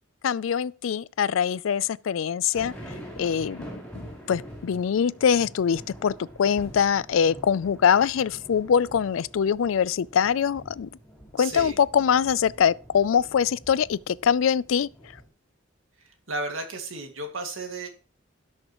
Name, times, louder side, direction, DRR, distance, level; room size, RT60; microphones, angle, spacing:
voice 1, 0.2-2.7 3.2-3.7 3.9-4.0 4.3-10.9 11.3-14.9, left 7 dB, 85° left, 0.4 m, -23 dB
sound 1, 2.5-15.3, equal, 5° left, 5.0 m, -45 dB
voice 2, 11.4-11.8 16.0-17.9, right 2 dB, 90° right, 2.2 m, -34 dB
17.0 x 6.5 x 3.0 m
head